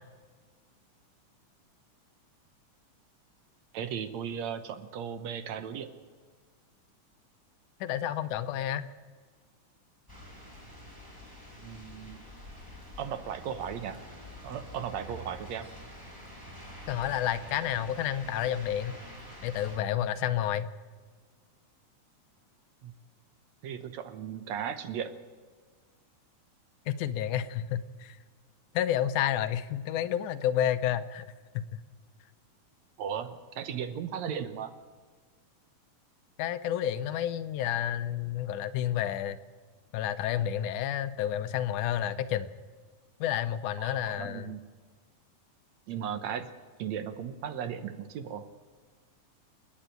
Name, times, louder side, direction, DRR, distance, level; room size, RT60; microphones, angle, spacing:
voice 1, 3.7-5.9 11.6-12.2 13.0-14.0 14.4-15.7 22.8-22.9 23.6-25.1 33.0-34.7 43.8-44.6 45.9-46.5 46.8-48.5, right 8 dB, 70° right, 10 dB, 2.1 m, -36 dB
voice 2, 7.8-8.9 16.9-19.0 19.4-20.7 26.9-28.2 28.7-31.3 31.5-31.7 36.4-39.4 39.9-42.5 43.2-44.5, left 11 dB, 80° left, 12 dB, 2.2 m, -30 dB
sound 1, 10.1-19.8, equal, 5° right, 4.4 m, -47 dB
28.5 x 10.0 x 9.2 m, 1.5 s
omnidirectional pair, 3.5 m